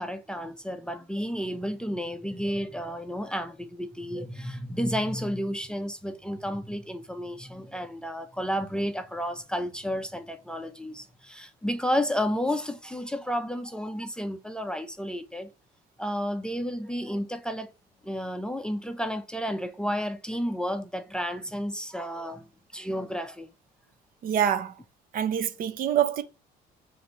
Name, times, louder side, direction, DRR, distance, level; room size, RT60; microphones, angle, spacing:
voice 1, 0.0-15.5 16.0-17.7 18.0-22.4 22.7-23.5, equal, 5° left, 0.4 m, -31 dB
voice 2, 24.2-24.7 25.1-26.2, right 9 dB, 55° right, 0.6 m, -25 dB
5.7 x 2.6 x 2.8 m
cardioid pair, 110°, 17 cm